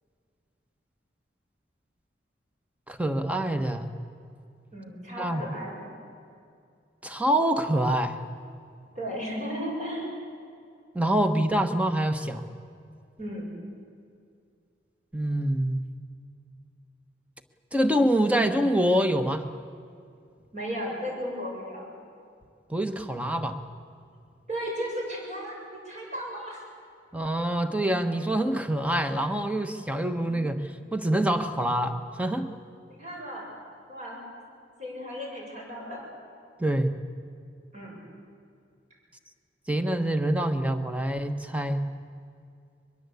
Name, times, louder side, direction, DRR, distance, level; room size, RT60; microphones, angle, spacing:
voice 1, 2.9-3.9 5.2-5.4 7.0-8.2 10.9-12.5 15.1-15.8 17.7-19.4 22.7-23.6 27.1-32.5 36.6-37.0 39.7-41.8, right 1 dB, 10° right, 8 dB, 1.2 m, -26 dB
voice 2, 4.7-5.9 8.9-10.1 13.2-13.5 20.5-21.9 24.5-26.6 33.0-33.5 33.9-34.2 34.8-36.0 37.7-38.0, equal, 40° right, -2 dB, 7.3 m, -35 dB
22.5 x 22.0 x 8.3 m, 2.4 s
head